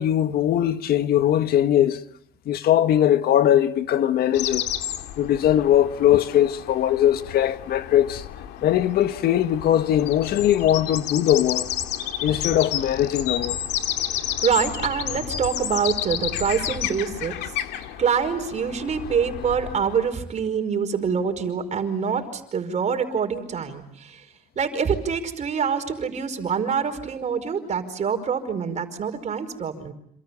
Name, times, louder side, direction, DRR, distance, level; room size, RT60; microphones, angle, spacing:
voice 1, 0.0-2.0 2.4-4.7 5.2-8.2 8.6-11.7 12.2-13.6, left 11 dB, 65° left, 1.6 m, -20 dB
sound 1, 4.3-20.1, left 11 dB, 85° left, 2.1 m, -31 dB
voice 2, 14.4-17.3 18.0-24.2 24.5-29.9, right 6 dB, 45° right, 5.0 m, -25 dB
28.0 x 27.0 x 7.1 m
cardioid pair, 110°, 17 cm